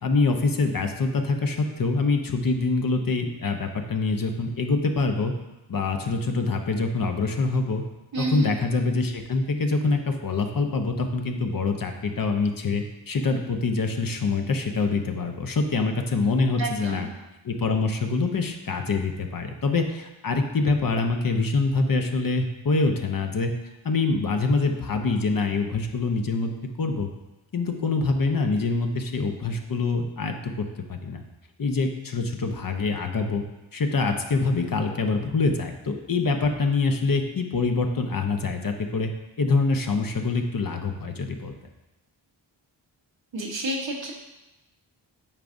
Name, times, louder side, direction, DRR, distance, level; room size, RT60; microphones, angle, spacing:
voice 1, 0.0-5.3 5.7-7.8 8.2-17.1 17.4-23.5 23.8-26.5 26.8-27.1 27.5-31.2 31.6-33.4 33.7-39.1 39.4-41.5, left 3 dB, 45° left, 5 dB, 0.8 m, -25 dB
voice 2, 8.1-8.5 16.6-17.1 43.3-44.1, right 2 dB, 75° right, -1 dB, 1.3 m, -29 dB
8.8 x 4.7 x 2.6 m, 1.0 s
cardioid pair, 55°, 46 cm